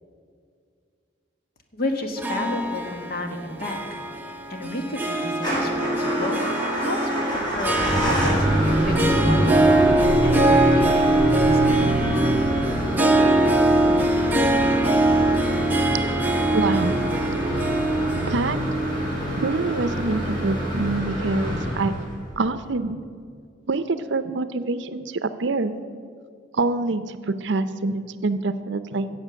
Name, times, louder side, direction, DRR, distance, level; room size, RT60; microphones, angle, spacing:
voice 1, 1.7-4.0 4.5-6.5 6.7-8.5 8.8-11.7, left 1 dB, 50° left, 3 dB, 1.5 m, -32 dB
Harp, 2.2-20.6, right 2 dB, 10° right, 0.7 m, -23 dB
Motor vehicle (road) / Engine starting / Idling, 5.3-22.3, equal, 25° left, 3.9 m, -26 dB
Alarm, 7.3-19.4, right 1 dB, 75° left, 2.5 m, -32 dB
voice 2, 16.5-17.0 18.2-18.6 19.4-21.9 22.4-23.0 23.7-25.7 26.5-29.1, right 3 dB, 65° right, 12 dB, 0.6 m, -25 dB
16.5 x 7.4 x 6.4 m, 2.3 s
head